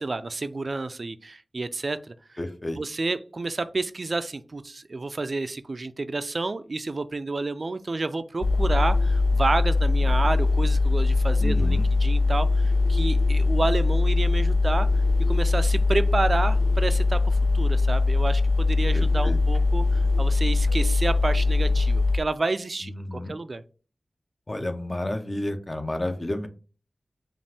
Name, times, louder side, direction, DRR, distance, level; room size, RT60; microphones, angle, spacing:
voice 1, 0.0-2.1 2.8-14.9 15.3-23.6, right 3 dB, 55° right, 12 dB, 0.3 m, -30 dB
voice 2, 2.4-2.8 11.4-11.9 18.9-19.4 22.8-23.4 24.5-26.5, left 1 dB, 30° left, 7 dB, 0.7 m, -31 dB
sound 1, 8.4-22.2, left 3 dB, 80° left, 0.6 m, -21 dB
5.3 x 2.5 x 3.3 m, 0.37 s
wide cardioid pair, 55°, 0 cm